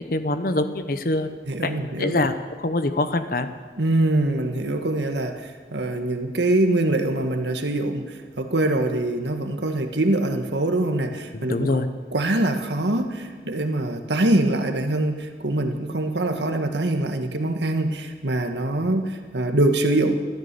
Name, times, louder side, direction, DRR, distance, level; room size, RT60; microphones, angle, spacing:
voice 1, 0.1-1.3 1.6-1.7 2.0-2.3 2.6-3.5 11.3-11.9 18.8-18.9, left 2 dB, 50° left, 9 dB, 0.9 m, -24 dB
voice 2, 1.5-2.2 3.8-11.7 12.1-20.1, right 1 dB, 80° right, 6 dB, 1.5 m, -24 dB
14.0 x 13.5 x 6.9 m, 1.4 s
head